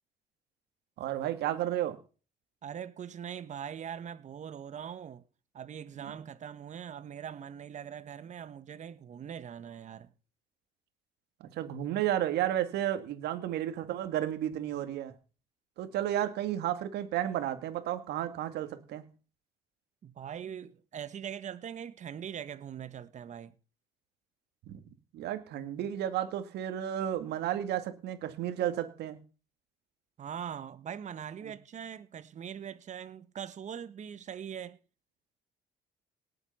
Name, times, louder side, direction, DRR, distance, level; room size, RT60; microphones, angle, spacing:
voice 1, 1.0-2.0 5.9-6.2 11.4-15.1 15.8-19.0 24.7-24.8 25.1-29.2 31.4-31.5, right 12 dB, 75° right, 2.1 m, -32 dB
voice 2, 2.6-5.2 5.5-10.1 20.0-23.5 30.2-34.8, right 8 dB, 45° right, 1.3 m, -42 dB
18.5 x 8.0 x 5.6 m
cardioid pair, 110°, 17 cm